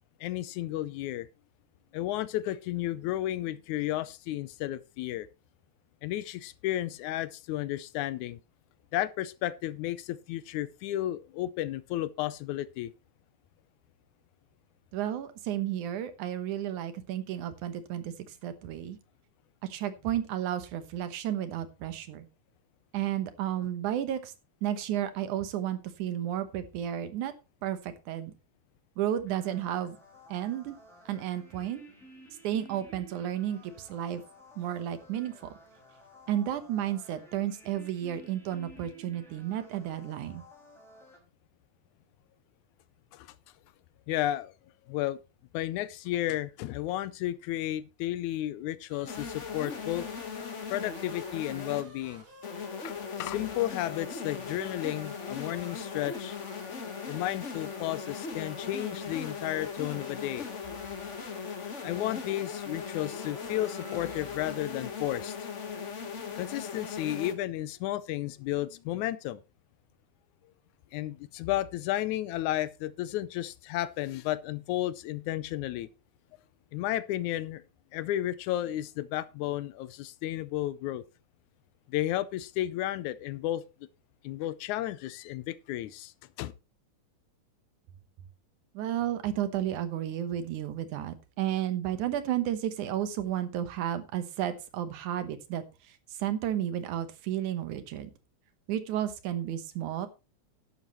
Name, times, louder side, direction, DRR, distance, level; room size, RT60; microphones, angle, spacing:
voice 1, 0.2-1.3 1.9-5.3 6.0-8.4 8.9-12.9 43.1-43.3 44.1-44.5 44.9-45.2 45.5-50.1 50.7-52.2 52.8-56.3 57.1-60.5 61.8-65.4 66.4-69.4 70.9-75.9 76.7-77.6 77.9-81.0 81.9-83.6 84.2-86.1 86.4-86.5, left 14 dB, 80° left, 2.0 m, -33 dB
voice 2, 14.9-19.0 19.7-22.3 22.9-24.3 24.6-27.3 27.6-28.3 29.0-30.0 30.3-30.8 31.1-31.8 32.4-34.2 34.6-35.5 36.3-40.4 88.7-98.1 98.7-100.1, right 11 dB, 80° right, 2.6 m, -32 dB
sound 1, 29.3-41.2, right 1 dB, ahead, 5.2 m, -54 dB
sound 2, 48.9-64.6, right 1 dB, 65° right, 6.9 m, -53 dB
sound 3, 49.1-51.8 52.4-67.3, left 6 dB, 60° left, 0.7 m, -39 dB
12.0 x 11.0 x 3.0 m
omnidirectional pair, 3.5 m